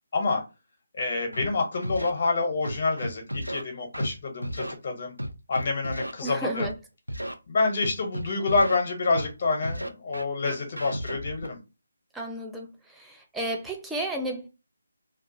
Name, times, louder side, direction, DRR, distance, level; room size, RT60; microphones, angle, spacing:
voice 1, 1.0-5.1 5.5-6.7 7.5-11.6, left 3 dB, 40° left, 0.7 m, -27 dB
Scratching (performance technique), 1.3-1.5 1.8-2.1 2.6-3.6 3.9-4.1 4.4-4.7 5.2-6.1 6.6-6.7 7.1-7.3 7.8-8.8 9.1-9.3 9.6-11.5, equal, 85° right, 0.4 m, -33 dB
voice 2, 6.2-6.7 12.1-14.5, right 1 dB, 5° right, 0.4 m, -33 dB
2.3 x 2.3 x 2.6 m
figure-of-eight pair, 150°, 0 cm